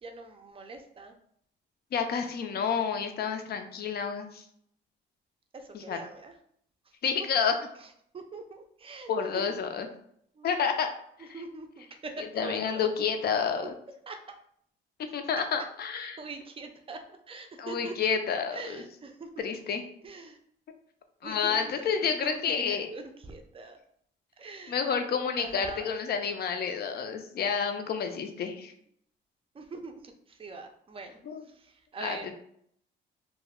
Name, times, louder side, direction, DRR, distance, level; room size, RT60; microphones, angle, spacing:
voice 1, 0.0-1.2 5.5-6.4 7.8-7.9 8.1-9.4 10.4-10.6 11.3-12.9 14.1-14.4 16.0-18.0 18.5-19.5 20.0-20.4 21.2-23.8 24.4-24.8 25.4-25.9 29.5-31.2 31.5-32.3, right 3 dB, 30° right, 5 dB, 0.5 m, -43 dB
voice 2, 1.9-4.4 5.7-6.0 7.0-7.5 9.1-9.9 10.4-10.9 11.2-11.3 12.2-13.7 15.1-16.2 17.6-18.8 19.4-19.8 21.2-22.9 24.7-28.7 31.3-31.4 32.0-32.2, left 6 dB, 55° left, 6 dB, 0.5 m, -29 dB
2.2 x 2.1 x 3.5 m, 0.67 s
cardioid pair, 90°, 20 cm